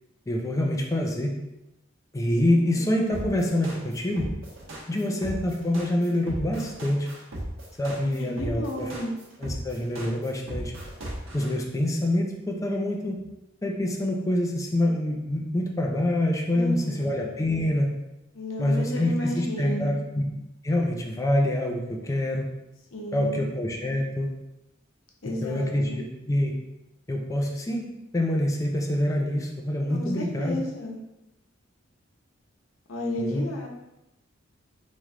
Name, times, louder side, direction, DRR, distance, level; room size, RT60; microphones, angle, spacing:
voice 1, 0.3-1.4 2.1-4.3 4.9-7.1 7.8-8.9 9.4-10.7 11.3-13.2 13.6-17.9 18.6-20.2 20.6-22.5 23.1-24.3 25.2-26.5 27.1-27.8 28.1-30.6 33.2-33.5, left 1 dB, 15° left, 0 dB, 0.4 m, -26 dB
voice 2, 2.4-3.0 4.9-5.4 8.0-9.1 16.5-17.2 18.3-20.0 22.9-23.4 25.2-26.0 29.9-31.0 32.9-33.7, left 1 dB, 90° left, 0 dB, 0.8 m, -33 dB
sound 1, 3.1-11.5, right 1 dB, 90° right, 1.1 m, -36 dB
3.4 x 3.1 x 3.6 m, 0.94 s
head